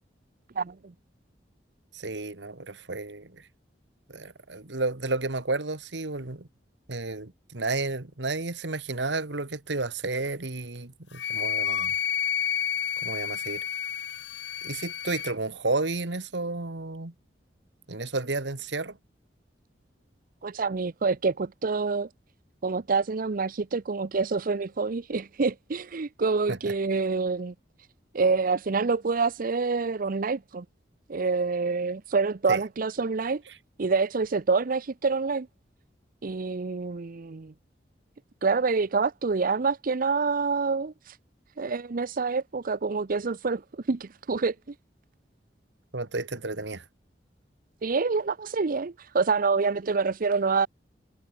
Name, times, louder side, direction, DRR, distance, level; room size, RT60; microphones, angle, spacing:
voice 1, 0.6-0.9 20.4-22.1 22.6-27.5 28.1-30.6 31.1-33.4 33.8-35.5 36.2-37.5 38.4-41.2 41.6-44.7 47.8-50.7, right 4 dB, 50° right, 0.6 m, -27 dB
voice 2, 1.9-3.5 4.1-6.5 6.9-11.9 13.0-13.6 14.6-17.1 17.9-19.0 26.5-26.7 32.5-32.6 45.9-46.8, right 3 dB, 75° right, 1.8 m, -32 dB
Wind instrument woodwind instrument, 11.1-15.3, left 8 dB, 80° left, 1.5 m, -30 dB
head